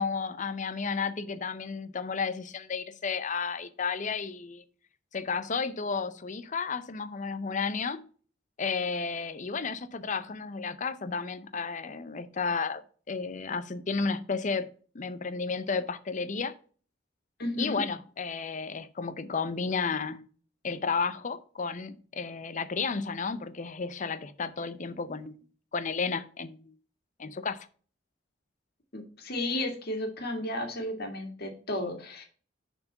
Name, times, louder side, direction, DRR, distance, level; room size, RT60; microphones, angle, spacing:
voice 1, 0.0-4.6 5.1-8.0 8.6-12.8 13.1-14.7 14.9-16.5 17.6-20.2 20.6-25.4 25.7-26.7 27.2-27.7, left 5 dB, 40° left, 0.6 m, -32 dB
voice 2, 17.4-17.8 28.9-32.3, left 1 dB, 60° left, 2.1 m, -33 dB
6.8 x 4.7 x 5.6 m
head